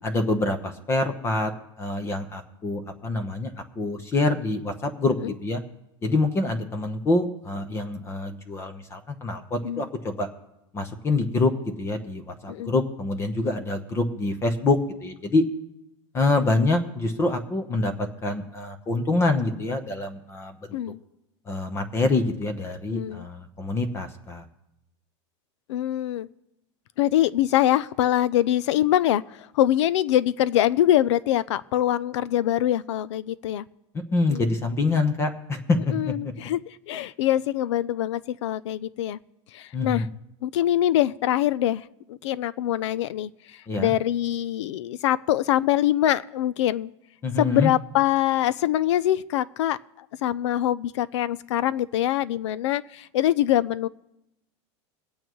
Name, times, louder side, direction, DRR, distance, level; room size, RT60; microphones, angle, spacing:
voice 1, 0.0-1.5 1.8-5.6 6.0-10.3 10.7-11.5 11.8-15.4 16.1-20.6 21.5-24.4 34.1-36.1 39.7-40.0 43.7-43.9 47.2-47.7, left 2 dB, 15° left, 7 dB, 0.9 m, -26 dB
voice 2, 22.9-23.3 25.7-26.3 27.0-33.6 34.3-34.4 35.9-39.2 39.5-40.1 40.4-41.8 42.1-43.3 43.8-46.9 47.4-53.9, left 12 dB, 75° left, 19 dB, 0.5 m, -24 dB
23.0 x 8.7 x 3.1 m, 0.89 s
supercardioid pair, 155°, 15 cm